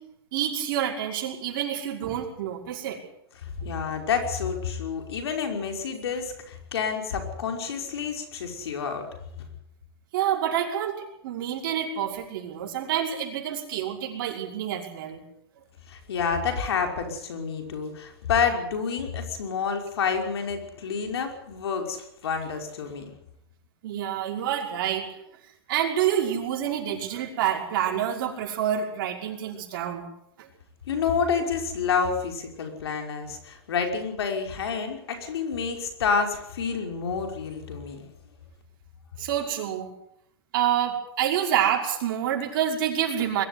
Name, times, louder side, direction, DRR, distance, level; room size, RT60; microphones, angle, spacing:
voice 1, 0.3-3.0 10.1-15.2 23.8-25.2 25.7-30.1 30.4-30.5 39.2-39.9 40.5-43.4, right 10 dB, 60° right, 0 dB, 5.6 m, -27 dB
voice 2, 3.4-9.0 15.9-23.1 30.9-38.1, left 6 dB, 90° left, 4 dB, 5.6 m, -29 dB
21.5 x 13.5 x 9.8 m, 0.77 s
supercardioid pair, 145°, 13 cm